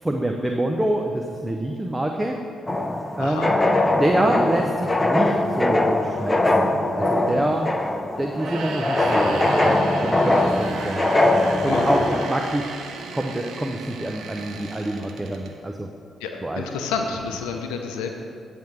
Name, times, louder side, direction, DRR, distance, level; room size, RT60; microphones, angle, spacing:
voice 1, 0.0-2.4 3.2-3.5 4.0-7.8 8.2-9.7 10.0-11.1 11.6-12.7 13.1-15.9 16.4-16.6, right 1 dB, 15° right, 2 dB, 0.8 m, -26 dB
sound 1, 2.7-12.3, left 2 dB, 20° left, 0.8 m, -21 dB
voice 2, 3.2-3.5 7.3-7.5 11.7-11.9 16.2-18.1, left 5 dB, 90° left, 4 dB, 0.6 m, -30 dB
sound 2, 8.3-15.5, right 4 dB, 75° right, 0.8 m, -35 dB
10.5 x 3.6 x 7.4 m, 2.5 s
supercardioid pair, 50°, 0 cm